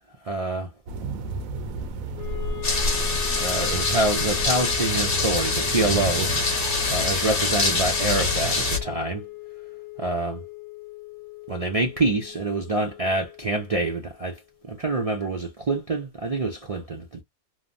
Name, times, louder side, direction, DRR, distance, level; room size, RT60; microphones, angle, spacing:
voice 1, 0.2-0.7 3.4-6.6 6.9-9.2 10.0-10.4 11.5-14.4 14.6-17.2, right 2 dB, 60° right, 0.3 m, -26 dB
sound 1, 0.9-8.8, equal, 80° right, 1.0 m, -31 dB
Wind instrument woodwind instrument, 2.2-14.4, left 12 dB, 85° left, 1.1 m, -39 dB
sound 2, 2.6-8.8, left 3 dB, 45° left, 1.0 m, -25 dB
3.0 x 2.1 x 2.4 m
omnidirectional pair, 1.5 m